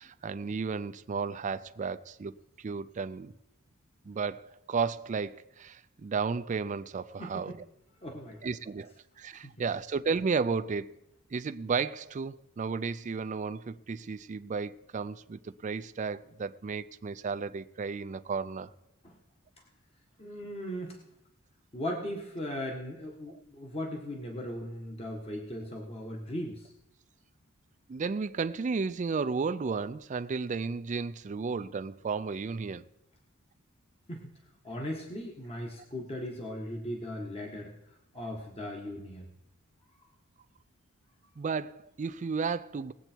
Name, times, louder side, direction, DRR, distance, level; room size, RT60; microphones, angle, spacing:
voice 1, 0.0-3.3 4.0-7.6 8.4-11.0 11.3-18.7 23.3-23.4 27.9-32.9 41.4-42.9, right 5 dB, 35° right, 0.4 m, -33 dB
voice 2, 8.0-8.4 19.0-19.1 20.2-21.0 21.7-26.7 34.1-34.3 34.6-37.7 38.1-39.2, left 1 dB, 30° left, 1.5 m, -38 dB
19.0 x 8.1 x 4.5 m
head